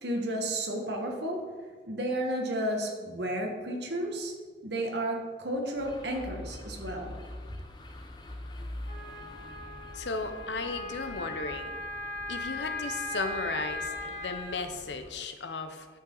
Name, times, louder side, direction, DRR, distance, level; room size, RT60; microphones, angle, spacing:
voice 1, 0.0-1.4 1.9-4.3 4.6-7.1, right 1 dB, 75° right, 1 dB, 1.5 m, -32 dB
sound 1, 5.8-15.1, left 1 dB, 25° left, 0.7 m, -45 dB
Wind instrument woodwind instrument, 8.9-14.6, left 1 dB, 45° left, 1.7 m, -38 dB
voice 2, 9.9-11.7 12.3-15.9, left 3 dB, 85° left, 8 dB, 0.8 m, -35 dB
11.5 x 5.8 x 3.9 m, 1.5 s
head